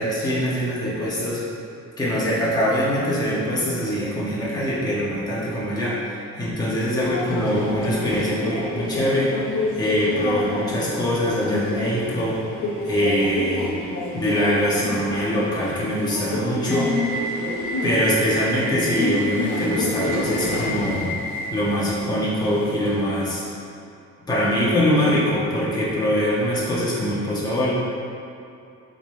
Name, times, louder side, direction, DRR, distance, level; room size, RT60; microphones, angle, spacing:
voice 1, 0.0-1.4 2.0-9.4 9.8-12.4 12.9-13.7 14.1-16.9 17.8-21.1 21.5-23.4 24.3-27.7, equal, 15° left, -9 dB, 1.4 m, -23 dB
Subway metro underground, 7.0-23.0, left 1 dB, 80° left, 1.3 m, -28 dB
7.1 x 4.1 x 3.3 m, 2.7 s
cardioid pair, 90°, 30 cm